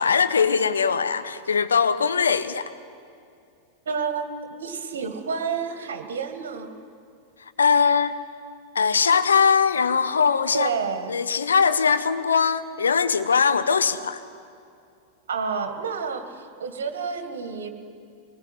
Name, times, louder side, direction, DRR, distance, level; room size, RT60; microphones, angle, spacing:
voice 1, 0.0-2.7 7.6-8.2 8.7-10.7 11.1-14.2, left 6 dB, 70° left, 11 dB, 1.1 m, -21 dB
voice 2, 3.9-6.8 10.5-11.1 15.3-17.7, right 5 dB, 65° right, 8 dB, 2.0 m, -29 dB
23.5 x 19.5 x 9.8 m, 2.4 s
figure-of-eight pair, 90°, 0 cm